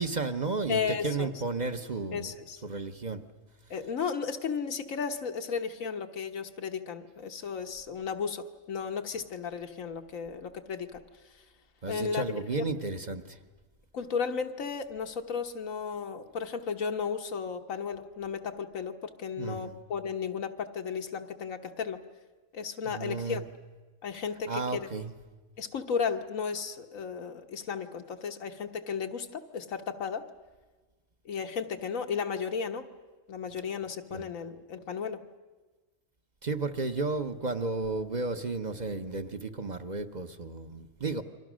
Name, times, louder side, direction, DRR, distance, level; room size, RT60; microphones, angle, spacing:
voice 1, 0.0-2.3 2.6-3.2 11.8-13.4 19.4-19.7 22.8-23.4 24.5-25.1 34.1-34.3 36.4-41.2, right 3 dB, 40° right, 7 dB, 0.9 m, -33 dB
voice 2, 0.7-1.3 2.1-2.6 3.7-11.0 11.9-12.7 13.9-22.0 22.5-23.4 24.0-24.9 25.6-30.2 31.2-32.9 33.3-35.2, left 6 dB, 85° left, 5 dB, 1.6 m, -34 dB
29.5 x 24.0 x 6.3 m, 1.3 s
omnidirectional pair, 1.3 m